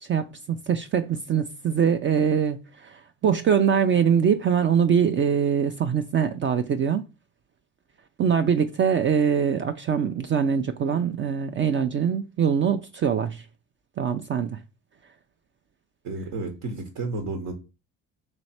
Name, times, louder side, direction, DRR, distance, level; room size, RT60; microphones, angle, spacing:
voice 1, 0.0-7.0 8.2-13.4 14.0-14.6, right 7 dB, 35° right, 0.5 m, -23 dB
voice 2, 16.0-17.5, right 3 dB, 65° right, 1.1 m, -31 dB
3.2 x 3.0 x 4.3 m
hypercardioid pair, 65°, 34 cm